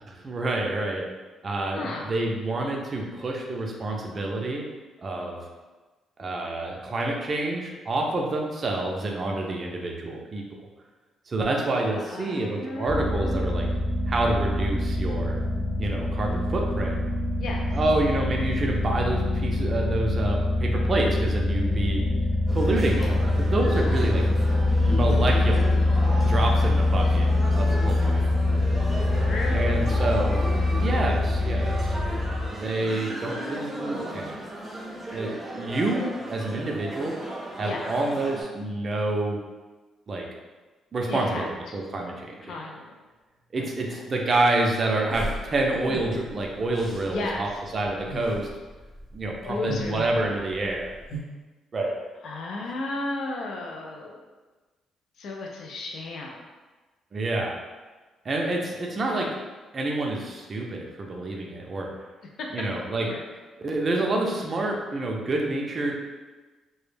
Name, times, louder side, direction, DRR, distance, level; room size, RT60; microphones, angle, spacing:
voice 1, 0.2-1.0 1.4-4.7 5.0-5.4 6.2-10.4 11.3-13.7 14.1-15.4 15.8-17.0 17.7-22.0 22.5-24.2 24.5-25.8 26.2-28.5 29.5-31.9 32.5-34.4 35.1-36.0 36.3-37.2 37.6-39.4 40.1-40.3 40.9-42.5 43.5-47.5 47.7-48.5 49.1-50.9 51.7-51.9 57.1-57.6 58.2-59.3 59.7-61.9 62.5-63.0 63.6-66.1, right 2 dB, 40° right, 0 dB, 0.4 m, -28 dB
voice 2, 1.7-2.1 11.9-14.1 17.4-17.8 23.0-23.1 23.7-24.2 29.1-30.2 31.3-32.0 32.8-34.4 37.6-37.9 41.1-41.8 42.4-42.9 43.6-44.0 47.1-47.6 49.4-50.4 52.2-54.3 55.2-56.5 59.0-59.3 62.4-63.2, left 2 dB, 70° left, -1 dB, 0.3 m, -36 dB
sound 1, 12.9-32.5, left 2 dB, 15° left, 1.0 m, -24 dB
sound 2, 22.5-38.4, right 1 dB, ahead, 0.6 m, -36 dB
sound 3, 45.1-51.2, equal, 35° left, 0.6 m, -37 dB
2.1 x 2.0 x 3.1 m, 1.3 s
cardioid pair, 90°, 0 cm